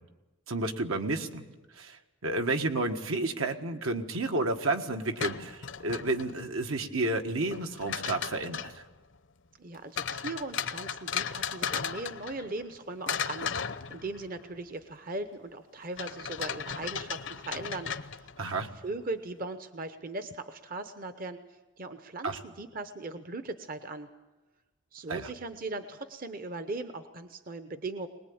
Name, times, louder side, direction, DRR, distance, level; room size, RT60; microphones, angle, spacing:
voice 1, 0.5-1.4 1.7-8.8 18.4-18.7 22.2-22.4 25.1-25.3, right 2 dB, 80° right, 5 dB, 1.6 m, -31 dB
sound 1, 5.0-6.5 7.5-8.8 10.0-12.7 13.1-14.4 16.0-18.5, left 7 dB, 60° left, 0.8 m, -36 dB
voice 2, 9.6-21.4 21.8-24.1 24.9-28.1, right 2 dB, 40° right, 9 dB, 0.9 m, -39 dB
22.0 x 20.0 x 8.7 m, 1.1 s
head